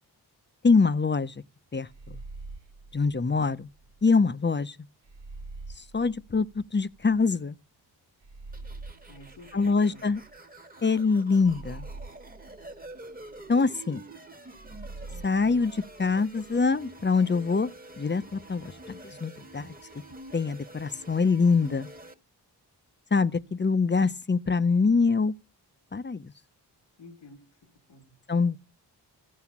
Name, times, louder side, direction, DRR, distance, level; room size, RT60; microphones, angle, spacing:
voice 1, 0.6-1.4 1.7-2.2 2.9-3.7 4.0-4.8 5.9-7.6 9.5-10.2 10.8-11.9 13.5-14.0 15.2-17.7 18.0-19.7 20.3-21.9 23.1-25.3 25.9-26.3 28.3-28.6, left 4 dB, 25° left, 0.7 m, -24 dB
sound 1, 1.9-4.0 5.0-7.2 8.2-10.6 11.4-13.5 14.5-16.7, right 3 dB, 90° right, 1.3 m, -45 dB
sound 2, 8.5-22.1, right 1 dB, 20° right, 1.5 m, -47 dB
voice 2, 9.1-10.1 27.0-28.2, left 2 dB, 80° left, 1.5 m, -51 dB
13.0 x 4.7 x 7.3 m
cardioid pair, 45°, 42 cm